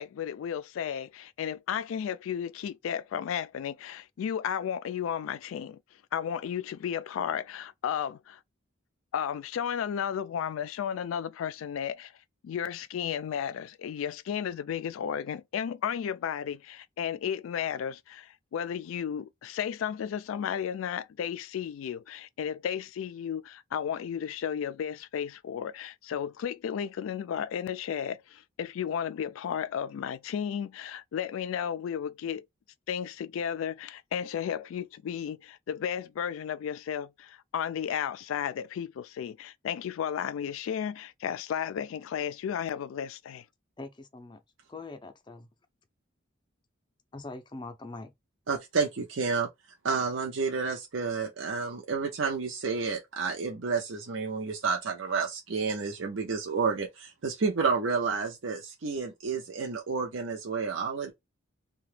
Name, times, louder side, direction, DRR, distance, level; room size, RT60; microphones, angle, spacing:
voice 1, 0.0-5.8 6.1-8.4 9.1-12.1 12.4-32.4 32.9-43.4, left 8 dB, 90° left, 0.3 m, -33 dB
voice 2, 43.8-44.4 44.7-45.5 47.1-48.1, left 3 dB, 25° left, 0.4 m, -42 dB
voice 3, 48.5-49.5 49.8-61.1, right 5 dB, 70° right, 0.6 m, -30 dB
2.8 x 2.2 x 3.2 m
head